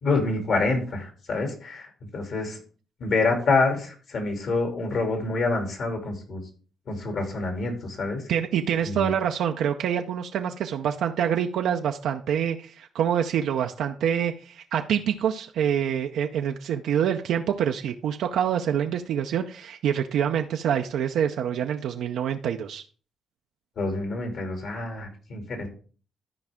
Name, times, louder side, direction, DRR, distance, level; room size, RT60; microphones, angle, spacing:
voice 1, 0.0-2.6 3.0-6.4 6.9-8.2 8.8-9.1 23.8-25.7, left 3 dB, 60° left, 4 dB, 2.7 m, -27 dB
voice 2, 8.3-22.8, right 9 dB, 75° right, 4 dB, 0.6 m, -26 dB
13.0 x 4.8 x 3.6 m, 0.40 s
cardioid pair, 90°, 0 cm